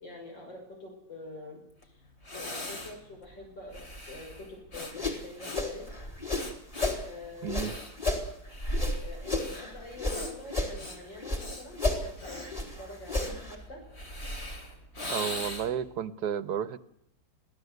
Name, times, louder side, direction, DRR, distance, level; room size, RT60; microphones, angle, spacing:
voice 1, 0.0-1.9 2.3-5.9 7.0-7.8 9.0-13.8, left 2 dB, 90° left, 1 dB, 6.5 m, -46 dB
Breathing, 1.8-1.9 2.2-15.9, left 1 dB, 35° left, 3.4 m, -39 dB
sound 1, 4.7-7.0 7.4-10.2 10.5-11.5 11.7-13.6, left 2 dB, 20° left, 3.9 m, -32 dB
voice 2, 7.4-7.7 15.1-16.8, right 9 dB, 65° right, 14 dB, 1.5 m, -32 dB
25.0 x 16.5 x 8.1 m, 0.78 s
omnidirectional pair, 1.9 m